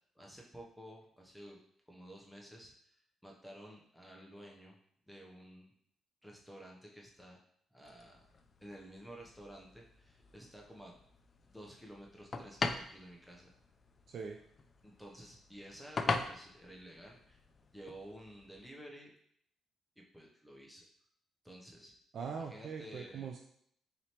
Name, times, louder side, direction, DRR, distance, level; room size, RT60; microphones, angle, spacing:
voice 1, 0.2-1.6 1.9-4.8 5.1-5.7 6.2-7.4 7.7-8.3 8.6-10.9 11.5-13.5 14.8-17.4 17.7-19.1 20.0-20.8 21.4-21.9 22.3-23.3, equal, ahead, -1 dB, 0.7 m, -52 dB
sound 1, 7.8-18.7, left 3 dB, 40° left, 0.3 m, -43 dB
voice 2, 14.1-14.4 22.1-23.4, right 6 dB, 60° right, 2 dB, 0.4 m, -41 dB
4.1 x 3.0 x 2.9 m, 0.68 s
cardioid pair, 90°, 0 cm